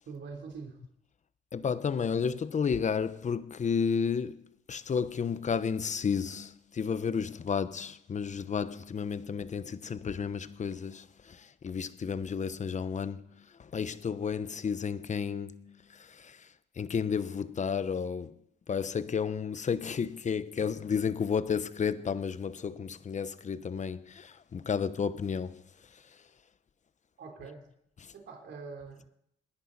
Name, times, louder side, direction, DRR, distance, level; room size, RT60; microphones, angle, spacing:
voice 1, 0.1-0.8 27.2-27.6 28.1-29.1, right 5 dB, 65° right, 3.6 m, -44 dB
voice 2, 1.5-4.4 4.7-16.5 16.8-18.3 18.7-25.6 25.9-26.0 28.0-28.1, left 6 dB, 35° left, 0.9 m, -32 dB
29.0 x 10.5 x 4.2 m
cardioid pair, 90°, 20 cm